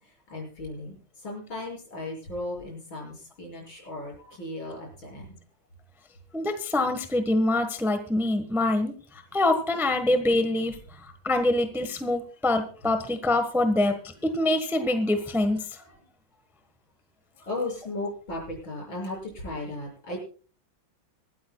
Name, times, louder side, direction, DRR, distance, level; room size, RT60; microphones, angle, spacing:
voice 1, 0.3-5.4 15.9-16.0 17.4-20.2, left 2 dB, 75° left, -1 dB, 7.5 m, -36 dB
voice 2, 6.3-8.9 9.3-10.7 11.2-13.9 14.2-15.6, left 2 dB, ahead, 7 dB, 0.9 m, -24 dB
25.5 x 13.0 x 2.3 m, 0.40 s
omnidirectional pair, 2.1 m